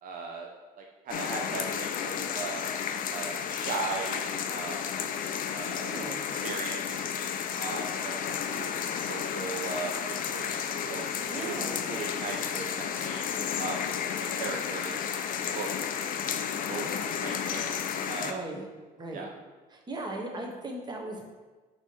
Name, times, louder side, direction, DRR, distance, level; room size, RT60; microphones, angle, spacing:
voice 1, 0.0-0.5 0.8-2.6 3.1-4.8 5.5-5.9 6.4-7.0 7.6-9.9 10.2-11.0 11.4-13.2 13.6-13.8 14.4-15.2 15.5-15.7 16.7-17.7 18.1-18.4 19.1-19.3, right 4 dB, 55° right, 0 dB, 0.7 m, -38 dB
sound 1, 1.1-18.3, left 8 dB, 55° left, 0.5 m, -32 dB
voice 2, 5.6-6.2 11.3-11.8 18.2-18.7 19.0-19.3 19.7-21.3, right 2 dB, 25° right, 1 dB, 1.1 m, -38 dB
5.7 x 3.0 x 5.4 m, 1.3 s
cardioid pair, 110°, 17 cm